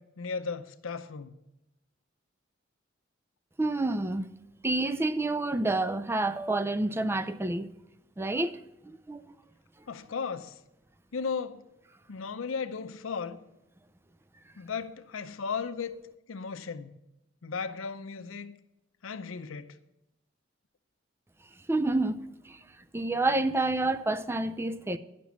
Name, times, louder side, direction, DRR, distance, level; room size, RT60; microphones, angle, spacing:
voice 1, 0.0-1.4 9.9-10.6 11.1-11.6 12.1-13.4 14.6-15.9 16.3-17.0 17.4-18.5 19.0-19.8, left 5 dB, 80° left, 0.6 m, -35 dB
voice 2, 3.6-4.2 4.6-7.7 8.2-8.6 9.1-9.2 21.7-22.2 22.5-22.6 22.9-25.0, right 2 dB, 10° right, 0.3 m, -28 dB
11.0 x 6.0 x 7.2 m
head